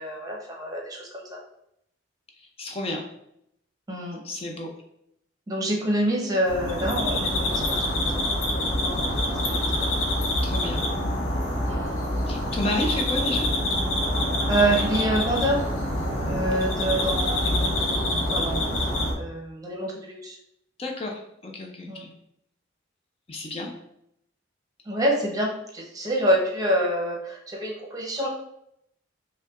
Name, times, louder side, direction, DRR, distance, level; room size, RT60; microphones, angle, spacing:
voice 1, 0.0-1.4 3.9-4.2 5.5-8.2 8.8-9.1 9.5-9.7 11.7-12.0 14.5-15.6 16.3-18.0 18.3-20.4 21.9-22.1 24.9-28.3, right 1 dB, 20° right, -1 dB, 0.7 m, -27 dB
voice 2, 2.6-3.0 4.2-4.7 10.4-10.8 12.3-13.5 20.8-22.1 23.3-23.7, left 1 dB, 30° left, 2 dB, 0.4 m, -31 dB
sound 1, 6.4-19.1, left 1 dB, 85° left, 0.7 m, -26 dB
5.3 x 2.2 x 2.4 m, 0.77 s
head